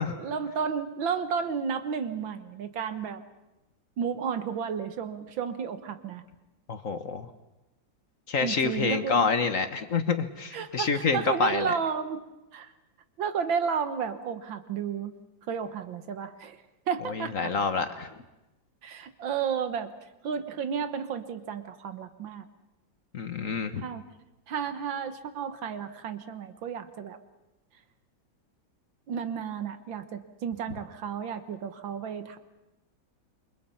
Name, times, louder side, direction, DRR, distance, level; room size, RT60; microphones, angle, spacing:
voice 1, 0.2-3.2 4.0-6.2 8.4-9.3 10.5-12.3 12.5-12.7 13.2-15.1 15.5-17.5 18.8-19.9 20.2-22.5 23.8-24.0 24.5-27.2 29.1-32.4, right 7 dB, 80° right, 10 dB, 1.9 m, -32 dB
voice 2, 6.7-7.3 8.3-11.7 17.0-18.1 23.1-23.8, left 5 dB, 45° left, 9 dB, 1.4 m, -27 dB
28.5 x 24.0 x 5.7 m, 0.99 s
omnidirectional pair, 2.1 m